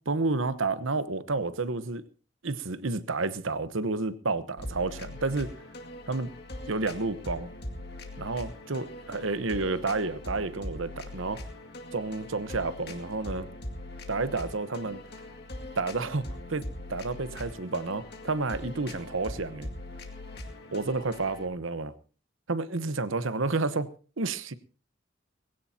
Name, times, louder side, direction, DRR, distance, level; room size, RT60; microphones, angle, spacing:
voice 1, 0.1-2.0 2.4-5.5 6.1-6.3 6.7-7.5 8.2-11.4 11.9-13.5 14.1-15.0 15.8-19.7 20.7-21.9 22.5-23.9 24.2-24.5, right 3 dB, 80° right, 1.0 m, -30 dB
sound 1, 4.6-21.5, left 1 dB, 50° left, 2.2 m, -41 dB
20.5 x 16.5 x 2.8 m
head